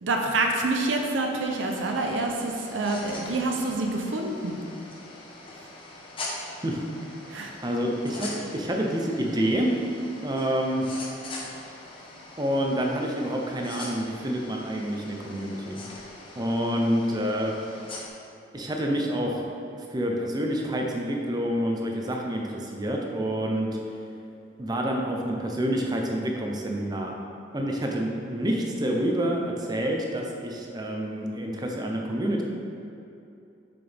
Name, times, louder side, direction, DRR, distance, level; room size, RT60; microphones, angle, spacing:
voice 1, 0.0-4.6 7.3-7.5, right 2 dB, 80° right, 2 dB, 0.7 m, -27 dB
sound 1, 1.4-18.1, left 2 dB, 30° left, 0.9 m, -42 dB
voice 2, 7.6-9.7 10.2-10.8 12.4-15.8 16.4-17.5 18.5-19.5 19.7-23.8 24.6-27.2 27.5-32.4, equal, 20° right, 0 dB, 0.7 m, -28 dB
6.8 x 6.0 x 3.5 m, 2.7 s
head